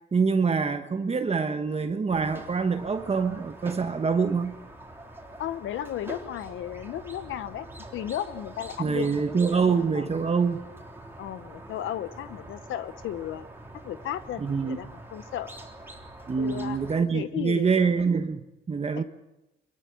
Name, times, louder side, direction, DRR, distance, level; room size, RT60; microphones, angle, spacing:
voice 1, 0.1-4.6 8.8-10.6 14.4-14.8 16.3-19.0, right 5 dB, 30° right, 1.2 m, -25 dB
Squeak, 2.1-17.0, right 1 dB, 10° right, 3.5 m, -45 dB
voice 2, 5.4-7.7 7.9-9.1 9.3-9.6 9.9-10.0 11.2-13.5 13.8-15.5 16.4-16.8 17.1-17.7 19.0-19.1, left 11 dB, 80° left, 0.9 m, -34 dB
24.5 x 13.0 x 9.2 m
cardioid pair, 90°, 20 cm